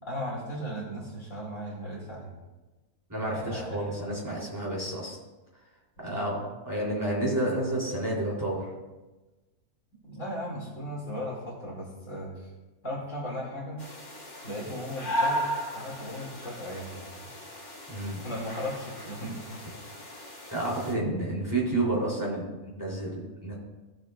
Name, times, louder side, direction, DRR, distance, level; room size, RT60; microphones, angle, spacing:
voice 1, 0.0-2.3 3.3-3.9 6.0-6.4 10.0-12.5 12.8-13.8 14.4-15.4 15.7-17.3 17.6-17.7 18.2-19.6 20.9-21.3, equal, 55° left, -4 dB, 2.7 m, -37 dB
voice 2, 3.1-5.2 6.0-8.7 17.9-18.2 20.5-23.6, right 1 dB, 10° right, -5 dB, 3.2 m, -30 dB
sound 1, 13.8-20.9, equal, 30° left, 1.3 m, -36 dB
16.5 x 7.5 x 2.4 m, 1.1 s
omnidirectional pair, 1.6 m